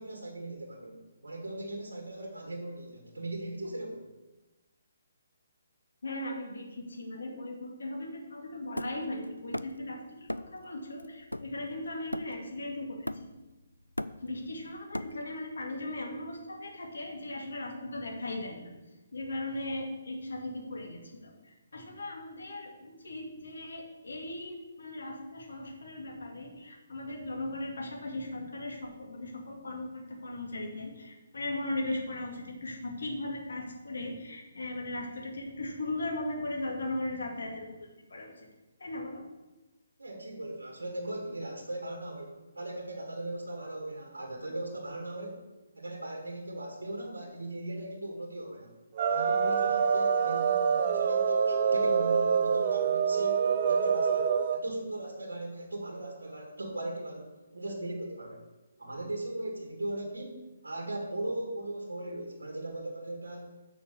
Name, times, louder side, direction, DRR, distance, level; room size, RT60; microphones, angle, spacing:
voice 1, 0.0-4.0 40.0-45.5 45.7-48.7 49.1-58.4 58.8-63.5, right 1 dB, 70° right, 0 dB, 2.1 m, -38 dB
voice 2, 6.0-13.3 14.2-18.6 19.1-38.3 38.8-39.2, left 1 dB, 60° left, 1 dB, 2.2 m, -38 dB
Hammer, 8.8-9.9 10.3-10.6 11.0-12.6 13.1-13.5 13.8-15.5, left 1 dB, 85° left, 0.4 m, -38 dB
sound 1, 49.0-54.6, right 6 dB, 40° right, 0.5 m, -26 dB
7.1 x 6.5 x 6.6 m, 1.1 s
figure-of-eight pair, 135°, 0 cm